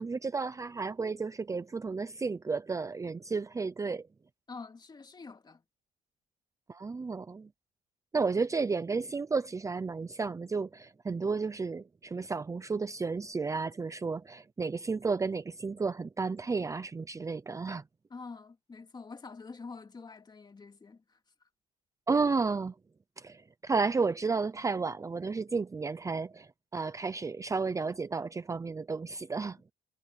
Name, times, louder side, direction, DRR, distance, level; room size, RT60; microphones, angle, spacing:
voice 1, 0.0-4.1 6.7-7.5 8.1-17.8 22.1-22.7 23.2-29.6, right 4 dB, 20° right, 0.7 m, -32 dB
voice 2, 4.5-5.6 18.1-21.2, left 4 dB, 25° left, 2.6 m, -46 dB
cardioid pair, 110°, 17 cm